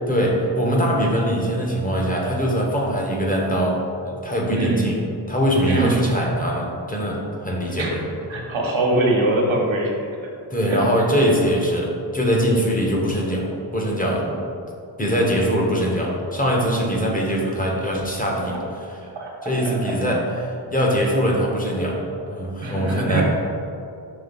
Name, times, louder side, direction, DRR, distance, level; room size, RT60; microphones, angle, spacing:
voice 1, 0.1-5.0 5.3-8.0 8.3-8.4 10.5-14.2 15.0-18.5 19.4-22.0 22.3-23.2, equal, 15° left, -2 dB, 1.1 m, -22 dB
voice 2, 5.6-6.0 7.8-7.9 8.3-9.9 10.7-10.8 19.1-19.7 20.1-20.2 22.6-23.2, right 2 dB, 70° right, -2 dB, 1.3 m, -22 dB
5.5 x 3.2 x 5.4 m, 2.6 s
wide cardioid pair, 95°, 47 cm